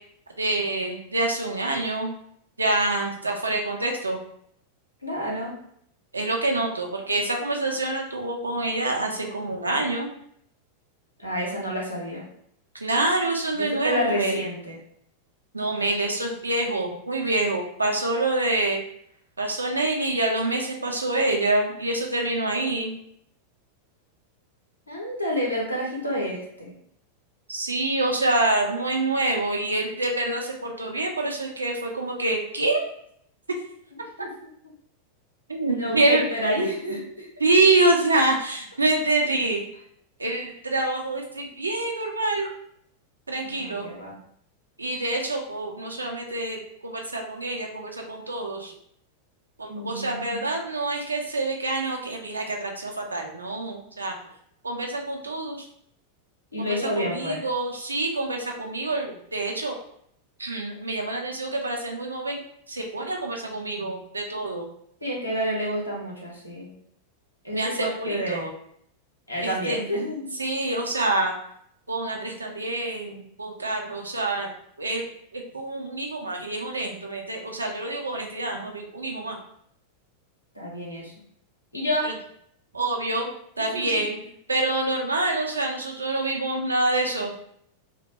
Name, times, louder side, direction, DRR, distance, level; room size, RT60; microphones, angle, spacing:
voice 1, 0.4-2.1 2.6-4.2 6.1-10.1 12.7-14.4 15.5-18.8 19.4-22.9 27.5-32.8 35.5-36.2 36.6-36.7 37.4-39.7 40.2-42.5 43.3-43.9 44.8-48.7 49.6-54.1 54.6-55.7 56.6-59.8 60.4-62.4 62.7-64.7 67.5-68.5 69.4-69.8 70.4-71.3 71.9-74.5 74.8-75.0 75.3-79.4 82.0-82.1 82.7-83.3 83.6-84.2 84.5-87.3, right 2 dB, 80° right, 1 dB, 0.4 m, -26 dB
voice 2, 5.0-5.5 11.2-12.2 13.5-14.8 24.9-26.7 34.2-34.3 35.7-37.3 43.4-44.2 49.7-50.5 56.5-57.4 65.0-66.7 67.4-68.5 69.3-70.3 80.5-81.1 81.7-82.1 83.7-84.0, equal, 85° left, -4 dB, 0.8 m, -29 dB
2.1 x 2.1 x 2.8 m, 0.68 s
figure-of-eight pair, 90°, 0 cm